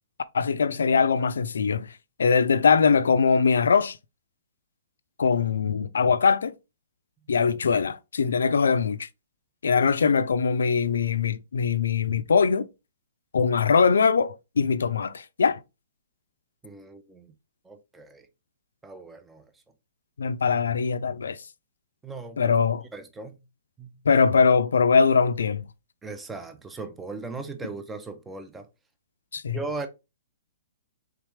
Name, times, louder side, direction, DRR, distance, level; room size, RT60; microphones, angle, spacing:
voice 1, 0.3-1.9 2.2-4.0 5.2-6.5 7.3-9.1 9.6-12.7 13.3-15.6 20.2-21.4 22.4-22.8 24.1-25.6 29.3-29.6, left 5 dB, 90° left, 0.4 m, -22 dB
voice 2, 16.6-17.3 17.6-18.3 18.8-19.5 22.0-22.5 22.9-23.4 23.8-24.0 26.0-28.7 29.5-29.9, right 3 dB, 10° right, 0.5 m, -38 dB
3.5 x 3.3 x 3.1 m
hypercardioid pair, 155°, 0 cm